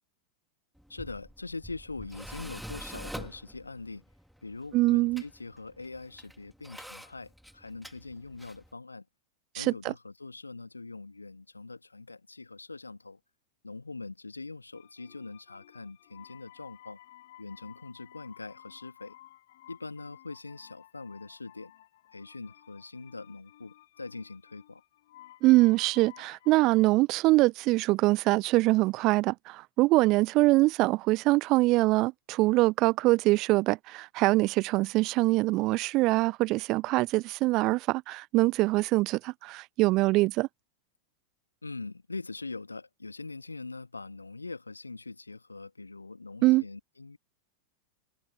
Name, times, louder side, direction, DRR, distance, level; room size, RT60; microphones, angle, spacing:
Tools, 0.8-8.7, equal, ahead, 3.0 m, -46 dB
voice 1, 0.9-4.0 4.4-9.1 9.6-13.2 13.6-17.0 17.4-19.1 19.7-21.7 22.1-24.8 41.6-47.2, left 3 dB, 80° left, 2.4 m, -42 dB
voice 2, 4.7-5.2 9.5-9.9 25.4-40.5 46.4-46.6, right 20 dB, 40° right, 0.4 m, -24 dB
sound 1, 14.7-26.9, left 14 dB, 55° left, 6.5 m, -55 dB
figure-of-eight pair, 90°, 0 cm